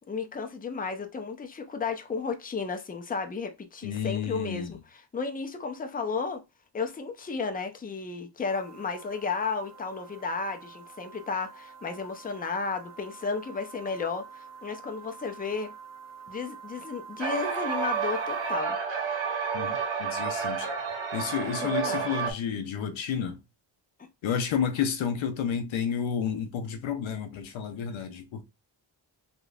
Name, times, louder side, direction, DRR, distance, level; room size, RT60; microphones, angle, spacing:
voice 1, 0.1-4.8 5.1-6.4 6.7-15.7 16.3-18.8 21.4-22.1, left 4 dB, 20° left, 0.5 m, -33 dB
voice 2, 3.8-4.8 19.5-20.7 21.1-23.4 24.2-28.4, left 7 dB, 90° left, 0.6 m, -31 dB
sound 1, 8.5-18.6, right 6 dB, 35° right, 1.4 m, -48 dB
sound 2, 17.2-22.3, right 6 dB, 80° right, 0.9 m, -30 dB
3.1 x 2.4 x 2.3 m
cardioid pair, 70°, 45 cm